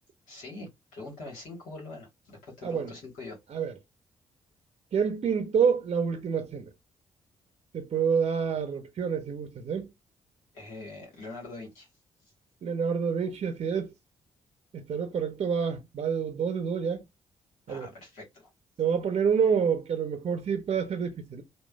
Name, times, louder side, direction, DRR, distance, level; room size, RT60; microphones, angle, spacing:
voice 1, 0.3-3.4 10.5-11.9 17.7-18.5, left 2 dB, 70° left, 1.3 m, -43 dB
voice 2, 2.6-2.9 3.5-3.7 4.9-6.7 7.7-9.9 12.6-13.9 14.7-17.0 17.7-17.9 18.8-21.4, right 6 dB, 50° right, 0.6 m, -28 dB
3.0 x 2.2 x 2.3 m
hypercardioid pair, 40°, 14 cm